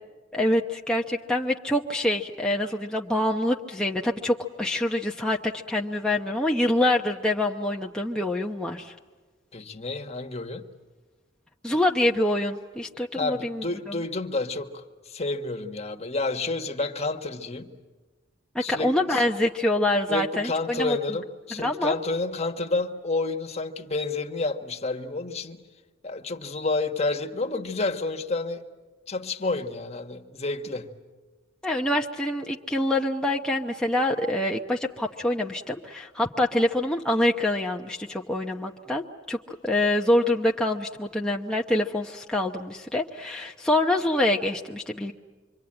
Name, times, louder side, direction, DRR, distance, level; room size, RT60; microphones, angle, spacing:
voice 1, 0.3-8.9 11.6-13.9 18.5-21.0 21.6-22.0 31.6-45.1, left 1 dB, 5° left, 0.8 m, -25 dB
voice 2, 9.5-10.7 13.1-17.7 18.6-19.3 20.1-25.6 26.0-28.6 29.1-31.0, left 3 dB, 35° left, 1.5 m, -30 dB
26.5 x 24.5 x 8.8 m
head